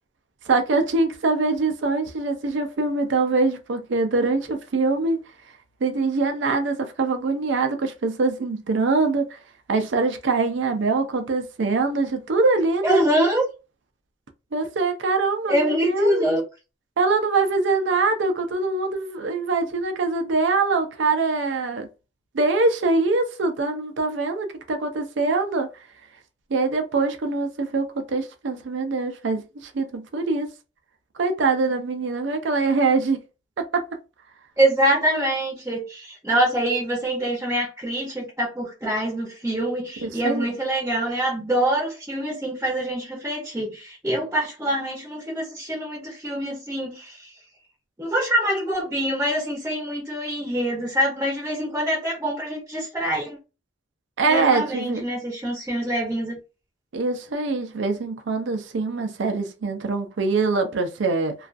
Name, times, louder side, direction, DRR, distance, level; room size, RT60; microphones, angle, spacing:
voice 1, 0.5-5.2 5.8-9.4 9.7-13.0 14.5-16.3 17.0-21.9 22.3-25.7 26.5-30.5 31.2-33.2 33.6-33.8 40.0-40.5 54.2-55.0 56.9-61.3, right 3 dB, 75° right, 0.4 m, -23 dB
voice 2, 12.8-13.4 15.5-16.4 34.6-47.3 48.0-53.4 54.2-56.4, right 1 dB, 15° right, 0.6 m, -25 dB
2.3 x 2.3 x 2.4 m
head